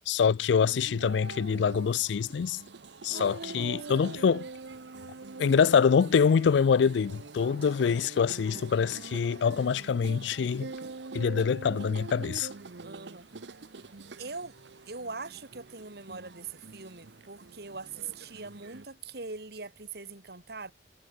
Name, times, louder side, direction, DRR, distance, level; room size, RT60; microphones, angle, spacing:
voice 1, 0.1-2.6 3.0-4.5 5.4-10.7 11.1-12.5, left 6 dB, 90° left, 0.4 m, -25 dB
sound 1, 0.6-18.9, right 3 dB, 85° right, 0.9 m, -44 dB
voice 2, 3.1-4.1 12.8-13.3 14.2-14.5 14.9-20.7, right 4 dB, 65° right, 2.7 m, -42 dB
head